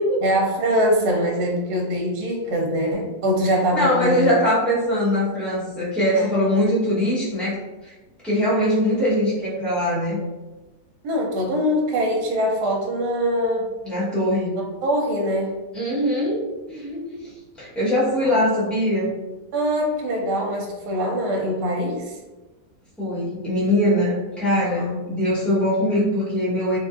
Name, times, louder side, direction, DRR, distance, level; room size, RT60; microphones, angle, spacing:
voice 1, 0.2-4.3 6.1-6.3 11.0-13.7 14.8-15.5 18.2-18.3 19.5-22.2 24.6-25.0, equal, 70° right, 0 dB, 1.1 m, -23 dB
voice 2, 3.7-7.6 8.2-10.2 13.8-14.6 15.7-16.4 16.7-17.2 17.6-19.2 23.0-26.8, left 1 dB, ahead, -10 dB, 0.6 m, -22 dB
3.5 x 2.4 x 2.4 m, 1.1 s
omnidirectional pair, 1.9 m